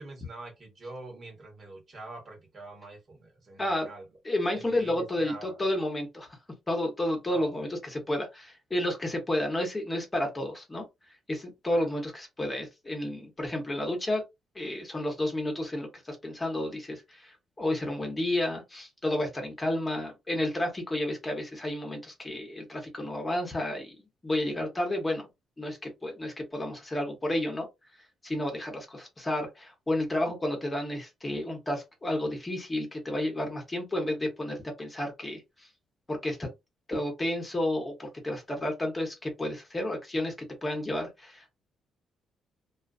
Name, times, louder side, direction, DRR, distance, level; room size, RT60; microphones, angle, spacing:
voice 1, 0.0-4.0 4.5-5.6 7.3-7.6 11.7-11.9, right 2 dB, 45° right, 1.2 m, -45 dB
voice 2, 4.2-6.4 6.7-14.2 14.5-24.0 24.2-25.3 25.6-27.7 28.2-35.7 36.1-36.5 36.9-41.5, left 1 dB, 20° left, 0.9 m, -31 dB
2.4 x 2.3 x 2.4 m
cardioid pair, 90°, 0 cm